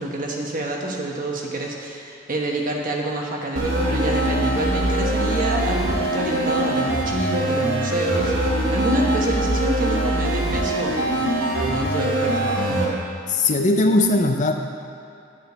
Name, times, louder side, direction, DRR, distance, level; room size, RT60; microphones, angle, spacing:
voice 1, 0.0-12.8, right 2 dB, 45° right, 0 dB, 1.3 m, -28 dB
sound 1, 3.6-12.9, right 1 dB, 70° right, 1.7 m, -22 dB
voice 2, 13.3-14.5, left 2 dB, 40° left, 4 dB, 0.7 m, -19 dB
9.7 x 5.1 x 8.2 m, 2.5 s
head